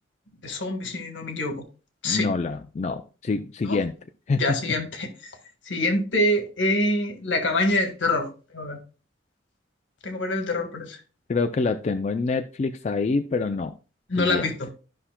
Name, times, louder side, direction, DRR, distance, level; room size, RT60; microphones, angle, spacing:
voice 1, 0.4-1.7 2.0-2.3 3.6-3.8 4.4-5.1 5.6-8.3 8.5-8.8 10.0-11.0 14.1-14.7, left 1 dB, 75° left, 1.5 m, -25 dB
voice 2, 2.0-3.9 4.3-4.7 11.3-13.7 14.2-14.5, left 4 dB, 40° left, 0.4 m, -26 dB
12.0 x 5.7 x 2.2 m
head